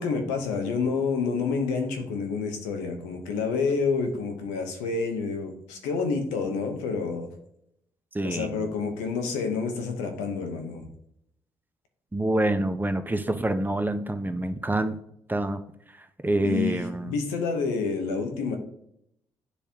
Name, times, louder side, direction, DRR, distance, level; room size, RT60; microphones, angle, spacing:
voice 1, 0.0-7.3 8.2-10.9 16.4-18.6, left 4 dB, 80° left, 6 dB, 1.0 m, -28 dB
voice 2, 8.1-8.6 12.1-15.0 15.3-15.6 16.2-17.1, right 1 dB, 15° right, 9 dB, 0.8 m, -26 dB
9.7 x 3.4 x 2.9 m, 0.74 s
hypercardioid pair, 45°, 12 cm